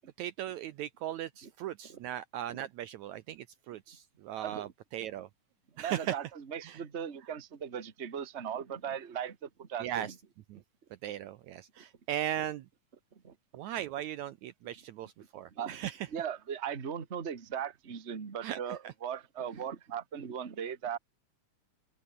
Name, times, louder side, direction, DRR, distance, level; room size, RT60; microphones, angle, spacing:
voice 1, 0.2-5.3 5.8-6.1 6.6-6.8 9.8-10.1 10.5-10.6 11.0-12.7 13.5-16.0 18.4-18.6 18.8-18.9, right 12 dB, 75° right, 1.9 m, -38 dB
voice 2, 4.3-4.7 5.8-10.1 11.8-11.9 13.2-13.3 15.5-15.8 16.1-21.0, right 8 dB, 30° right, 1.4 m, -38 dB
open air
omnidirectional pair, 3.9 m